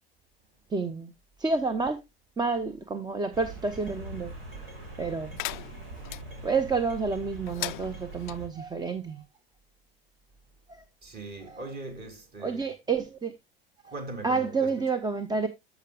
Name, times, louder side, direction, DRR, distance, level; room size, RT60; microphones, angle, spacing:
voice 1, 0.7-1.1 1.4-2.0 2.4-4.3 5.0-5.3 6.4-9.2 10.7-10.8 11.4-11.6 12.4-13.3 13.8-13.9 14.2-15.5, right 4 dB, 15° right, 0.7 m, -29 dB
sound 1, 3.3-8.5, right 2 dB, 70° right, 4.3 m, -42 dB
sound 2, 5.4-6.2 7.5-8.4, left 21 dB, 55° left, 0.4 m, -37 dB
voice 2, 11.0-12.6 13.9-14.7, right 2 dB, 30° right, 3.3 m, -40 dB
14.0 x 6.0 x 2.3 m
figure-of-eight pair, 85°, 30 cm